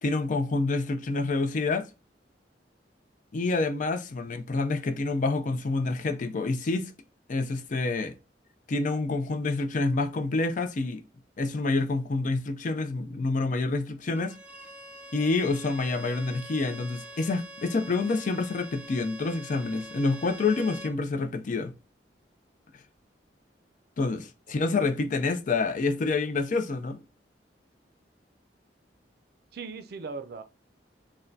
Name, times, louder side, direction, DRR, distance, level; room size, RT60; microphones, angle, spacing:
voice 1, 0.0-1.9 3.3-6.9 7.3-8.1 8.7-11.0 11.4-14.3 15.1-21.7 24.0-27.0, left 3 dB, 45° left, 0.5 m, -27 dB
Bowed string instrument, 14.2-21.0, right 1 dB, 5° right, 0.4 m, -45 dB
voice 2, 24.6-24.9 29.5-30.4, right 4 dB, 60° right, 0.5 m, -40 dB
6.1 x 2.2 x 2.6 m
head